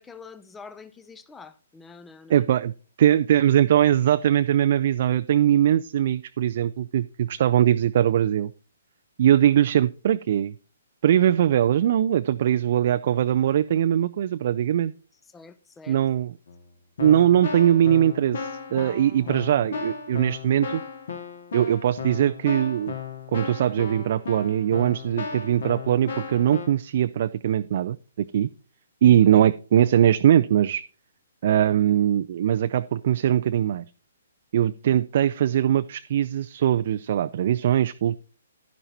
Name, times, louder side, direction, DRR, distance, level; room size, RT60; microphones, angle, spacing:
voice 1, 0.0-2.5 15.3-16.0 18.7-19.4 29.0-29.4, left 5 dB, 10° left, 0.6 m, -46 dB
voice 2, 2.3-2.7 3.0-8.5 9.2-10.5 11.0-14.9 15.9-16.3 17.0-20.8 21.5-22.9 23.3-28.5 29.0-30.8 31.4-33.8 34.5-38.2, right 10 dB, 45° right, 0.3 m, -21 dB
Keyboard (musical), 16.5-16.6 17.0-26.7, left 5 dB, 55° left, 2.0 m, -35 dB
11.0 x 10.0 x 2.8 m
figure-of-eight pair, 125°, 0 cm